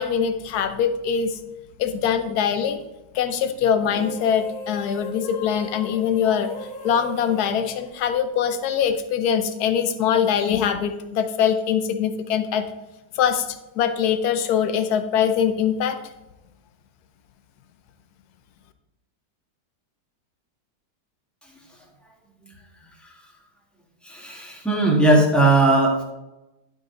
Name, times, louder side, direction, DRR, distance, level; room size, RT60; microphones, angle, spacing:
voice 1, 0.0-1.4 1.8-2.8 3.1-6.5 6.8-12.6 13.2-13.4 13.8-16.0, left 8 dB, 65° left, 9 dB, 1.2 m, -23 dB
sound 1, 3.8-8.5, left 2 dB, 85° left, 1.7 m, -37 dB
voice 2, 24.0-26.0, right 2 dB, ahead, -2 dB, 1.4 m, -18 dB
12.0 x 4.7 x 3.8 m, 0.99 s
omnidirectional pair, 1.9 m